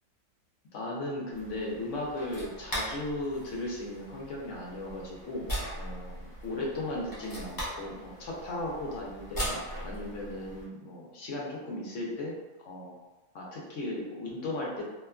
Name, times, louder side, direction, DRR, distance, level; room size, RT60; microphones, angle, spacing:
voice 1, 0.7-5.5 5.7-12.3 12.6-12.9 13.3-14.8, left 1 dB, 65° left, -3 dB, 0.9 m, -36 dB
sound 1, 1.3-10.6, equal, 35° left, 0.3 m, -40 dB
2.9 x 2.2 x 2.3 m, 1.1 s
omnidirectional pair, 1.6 m